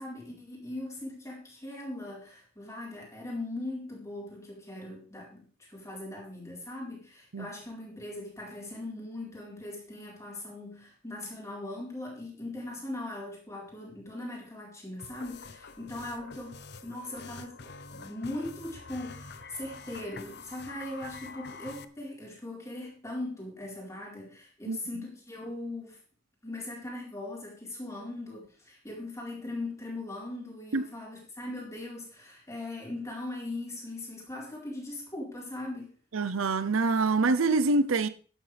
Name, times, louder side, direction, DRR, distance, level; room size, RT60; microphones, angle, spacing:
voice 1, 0.0-26.0 26.4-35.9, left 2 dB, 15° left, 4.3 m, -40 dB
sound 1, 15.0-21.8, left 4 dB, 55° left, 0.8 m, -46 dB
voice 2, 36.1-38.1, right 3 dB, 85° right, 0.7 m, -25 dB
12.0 x 11.0 x 3.4 m
head